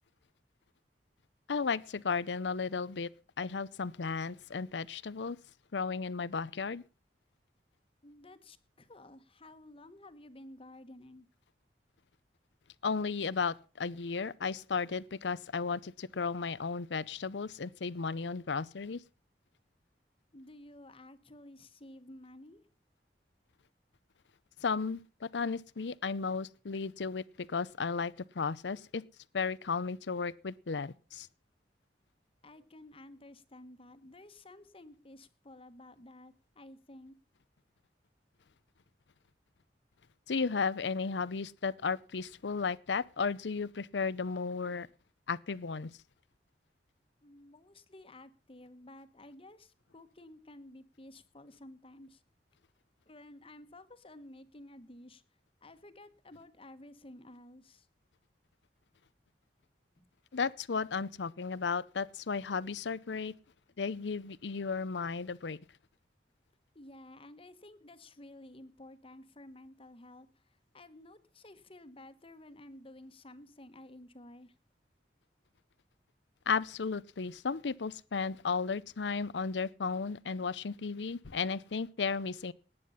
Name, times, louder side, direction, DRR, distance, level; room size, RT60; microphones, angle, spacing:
voice 1, 1.5-3.1 3.4-5.4 5.7-6.8 12.8-19.0 24.6-29.0 29.3-31.3 40.3-44.9 45.3-45.9 60.3-63.3 63.8-65.6 76.5-82.5, left 5 dB, 85° left, 0.6 m, -34 dB
voice 2, 8.0-11.3 20.3-22.7 32.4-37.1 47.2-52.2 53.0-55.2 55.6-57.9 60.0-60.1 66.7-74.6, left 1 dB, 30° left, 1.3 m, -53 dB
18.5 x 9.6 x 5.6 m
head